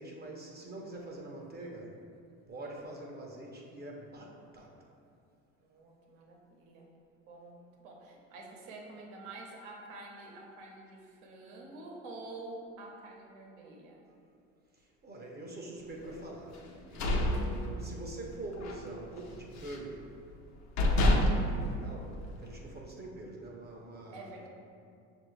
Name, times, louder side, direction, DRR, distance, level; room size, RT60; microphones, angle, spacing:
voice 1, 0.0-2.0 2.5-4.7 14.7-16.6 16.8-20.1 20.9-24.3, right 2 dB, 25° right, -1 dB, 0.7 m, -44 dB
voice 2, 5.6-6.8 7.3-14.0 16.8-17.2 21.6-22.1 24.1-24.5, right 2 dB, 75° right, -1 dB, 0.9 m, -48 dB
sound 1, 16.6-18.2 18.6-18.8 19.2-19.9 20.4-20.5 20.8-22.6, left 1 dB, 50° left, 0.6 m, -28 dB
6.0 x 2.5 x 3.1 m, 2.5 s
hypercardioid pair, 80°, 37 cm